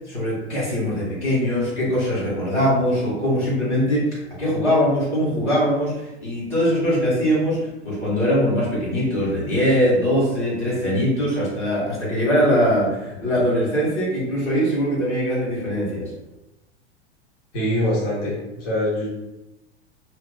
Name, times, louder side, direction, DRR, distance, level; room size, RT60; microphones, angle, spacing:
voice 1, 0.1-16.1, equal, 80° left, -6 dB, 1.4 m, -22 dB
voice 2, 17.5-19.1, left 1 dB, 45° left, -6 dB, 1.0 m, -24 dB
2.5 x 2.4 x 2.2 m, 0.94 s
figure-of-eight pair, 85°, 34 cm